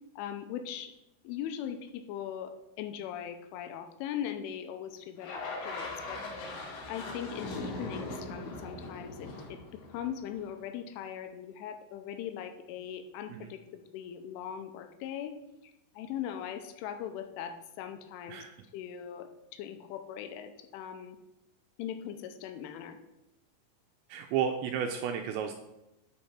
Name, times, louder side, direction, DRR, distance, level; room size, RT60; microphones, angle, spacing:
voice 1, 0.2-0.9 1.2-6.2 6.9-15.3 15.6-18.4 18.7-21.2 21.8-23.0, left 9 dB, 85° left, 7 dB, 3.2 m, -40 dB
sound 1, 5.2-10.5, left 2 dB, 65° left, 4.1 m, -40 dB
voice 2, 24.1-25.6, right 8 dB, 80° right, 5 dB, 2.7 m, -32 dB
10.0 x 4.7 x 5.8 m, 0.92 s
omnidirectional pair, 5.6 m